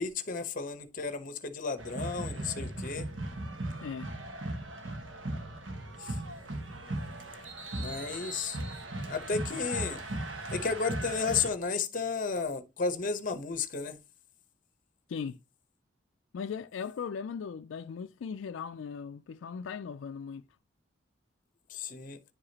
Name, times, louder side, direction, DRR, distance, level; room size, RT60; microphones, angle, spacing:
voice 1, 0.0-3.1 6.0-6.2 7.8-8.6 9.1-10.0 10.5-14.0 21.7-22.2, left 5 dB, 45° left, 0.8 m, -33 dB
sound 1, 1.8-11.5, right 1 dB, 75° right, 1.3 m, -38 dB
voice 2, 3.8-4.1 15.1-15.4 16.3-20.4, left 6 dB, 80° left, 0.4 m, -38 dB
10.0 x 4.9 x 2.8 m
head